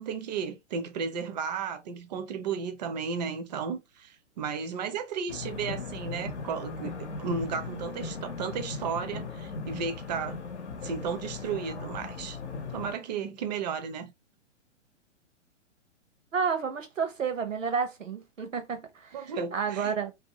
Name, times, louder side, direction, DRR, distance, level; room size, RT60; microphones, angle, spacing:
voice 1, 0.0-10.4 10.8-12.4 12.7-14.1 19.1-19.9, right 6 dB, 35° right, 0.5 m, -34 dB
sound 1, 5.3-13.0, left 4 dB, 65° left, 0.8 m, -38 dB
voice 2, 16.3-20.1, right 6 dB, 85° right, 0.8 m, -31 dB
2.6 x 2.3 x 2.8 m
figure-of-eight pair, 125°, 38 cm